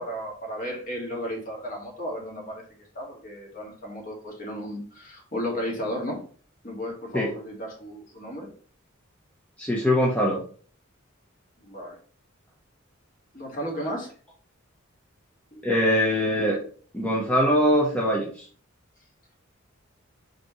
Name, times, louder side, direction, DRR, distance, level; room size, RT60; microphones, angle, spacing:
voice 1, 0.0-2.6 2.9-6.2 6.6-8.5 11.6-12.0 13.3-14.1 15.5-15.6, equal, 40° left, -1 dB, 2.1 m, -34 dB
voice 2, 9.6-10.4 15.6-16.6 16.9-18.5, equal, 5° left, -4 dB, 1.0 m, -22 dB
5.7 x 5.1 x 3.1 m, 0.44 s
head